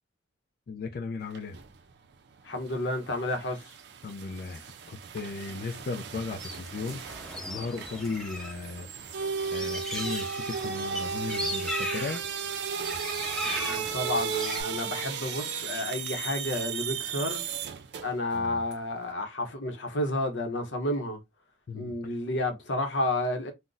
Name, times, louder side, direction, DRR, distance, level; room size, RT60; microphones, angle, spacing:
voice 1, 0.7-1.6 4.0-7.0 7.5-8.9 9.5-12.2 18.3-18.6 21.7-21.9, left 4 dB, 55° left, 0.3 m, -36 dB
sound 1, 1.2-1.8 2.1-18.3 18.7-18.8, right 7 dB, 65° right, 0.4 m, -35 dB
voice 2, 2.4-3.7 13.6-17.4 18.0-21.2 21.7-23.5, left 1 dB, 85° left, 0.8 m, -31 dB
sound 2, 6.4-8.5 8.8-14.6, left 1 dB, 5° left, 0.6 m, -37 dB
2.5 x 2.1 x 3.8 m
head